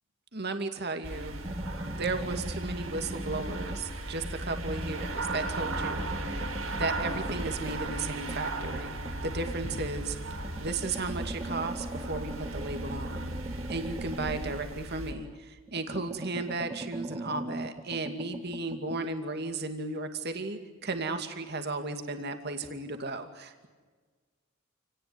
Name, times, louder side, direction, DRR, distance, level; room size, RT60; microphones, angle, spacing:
voice 1, 0.3-1.4 1.9-6.5 6.7-9.0 9.2-10.2 10.6-13.3 13.7-23.7, right 3 dB, 55° right, 6 dB, 2.5 m, -35 dB
sound 1, 1.0-15.1, right 2 dB, 85° right, 4.1 m, -36 dB
sound 2, 1.4-3.9 4.2-9.8 10.3-15.3 15.7-19.0, right 1 dB, 20° right, 0.8 m, -41 dB
Drum, 9.6-12.4, equal, 70° left, 5.3 m, -49 dB
29.0 x 19.0 x 9.6 m, 1.4 s
head